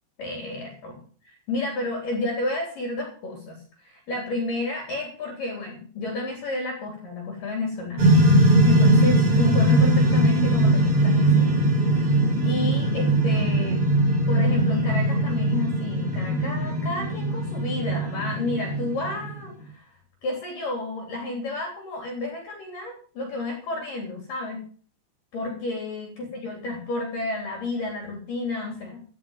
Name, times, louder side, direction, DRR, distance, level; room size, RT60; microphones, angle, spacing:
voice 1, 0.2-12.1 12.4-13.8 14.3-19.9 20.2-24.6 25.3-29.0, left 2 dB, 45° left, 1 dB, 4.8 m, -31 dB
sound 1, 8.0-19.4, right 1 dB, 30° right, 4.0 m, -20 dB
16.0 x 7.7 x 7.3 m, 0.43 s
omnidirectional pair, 5.9 m